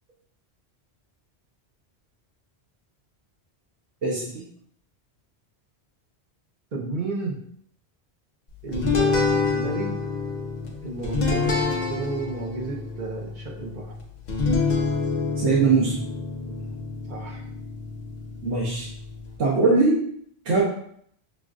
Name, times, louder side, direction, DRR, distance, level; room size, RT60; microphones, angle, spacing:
voice 1, 4.0-4.4 15.4-16.0 18.4-18.9 19.4-20.0 20.5-20.6, right 4 dB, 85° right, -5 dB, 1.1 m, -21 dB
voice 2, 6.7-7.4 8.6-10.0 10.8-13.9 16.5-16.8 17.1-17.4, right 3 dB, 50° right, 0 dB, 0.9 m, -32 dB
sound 1, 8.7-19.4, left 4 dB, 45° left, 0.7 m, -27 dB
6.1 x 2.5 x 2.4 m, 0.66 s
omnidirectional pair, 1.1 m